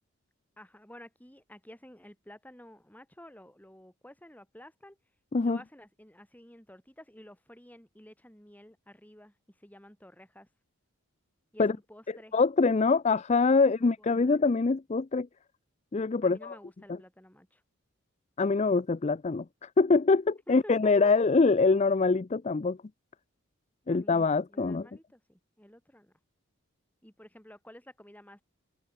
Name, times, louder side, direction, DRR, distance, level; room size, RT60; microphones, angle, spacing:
voice 1, 0.6-5.0 5.4-10.5 11.5-12.3 13.6-14.4 16.2-17.6 20.5-21.1 23.9-26.1 27.0-28.4, left 1 dB, 5° left, 4.8 m, -52 dB
voice 2, 12.3-15.3 15.9-16.6 16.9-17.0 18.4-22.8 23.9-24.9, left 4 dB, 30° left, 0.4 m, -24 dB
head